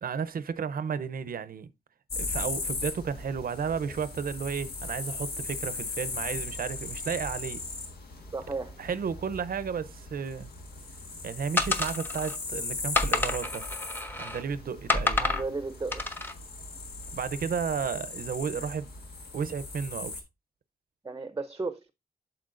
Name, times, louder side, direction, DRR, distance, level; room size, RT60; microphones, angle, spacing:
voice 1, 0.0-1.7 2.2-7.7 8.8-10.5 11.2-13.6 14.2-15.3 17.1-18.9 19.3-20.2, right 6 dB, 65° right, 0.6 m, -33 dB
sound 1, 2.1-20.2, left 3 dB, 90° left, 1.5 m, -38 dB
voice 2, 8.3-8.7 15.2-16.0 21.0-21.9, right 3 dB, 20° right, 0.6 m, -34 dB
sound 2, 11.6-12.4 12.9-14.4 14.9-15.5 15.9-16.3, left 3 dB, 15° left, 0.8 m, -28 dB
11.5 x 4.3 x 2.5 m
wide cardioid pair, 105°, 16 cm